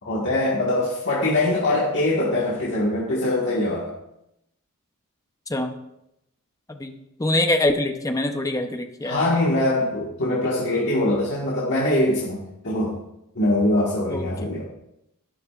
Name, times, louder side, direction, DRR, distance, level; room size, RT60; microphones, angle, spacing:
voice 1, 0.0-3.9 9.0-13.0 13.3-14.6, left 1 dB, 55° left, -5 dB, 1.6 m, -23 dB
voice 2, 7.2-9.2 14.1-14.6, left 1 dB, 15° left, 6 dB, 0.7 m, -24 dB
11.0 x 11.0 x 2.4 m, 0.84 s
head